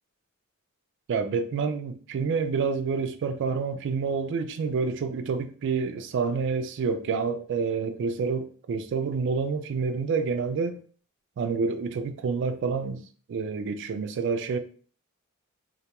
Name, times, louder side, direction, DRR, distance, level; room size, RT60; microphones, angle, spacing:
voice 1, 1.1-10.8 11.4-13.0 13.3-14.6, right 5 dB, 55° right, 0.3 m, -28 dB
2.3 x 2.2 x 2.8 m
head